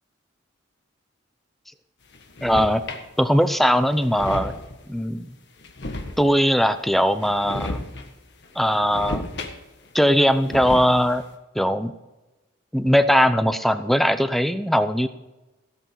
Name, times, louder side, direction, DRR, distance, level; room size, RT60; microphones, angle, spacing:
sound 1, 2.1-3.1 3.6-3.7 3.9-4.8 5.6-6.5 7.1-8.1 8.4-9.9 10.2-11.2, left 2 dB, 60° left, 1.6 m, -34 dB
voice 1, 2.4-2.8 3.2-4.6 4.9-5.3 6.2-7.8 8.6-9.2 9.9-11.2 11.5-11.9 12.7-15.1, equal, ahead, 11 dB, 0.6 m, -20 dB
17.0 x 8.1 x 4.7 m, 1.1 s
head